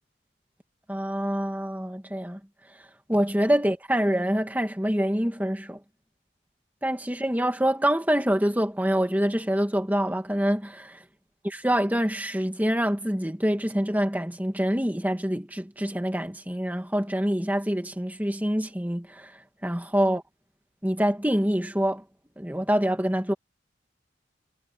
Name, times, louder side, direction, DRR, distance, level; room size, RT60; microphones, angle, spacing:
voice 1, 0.9-2.4 3.1-5.8 6.8-11.0 11.4-19.3 19.6-20.2 20.8-22.0 22.4-23.3, equal, 10° right, 2.1 m, -26 dB
head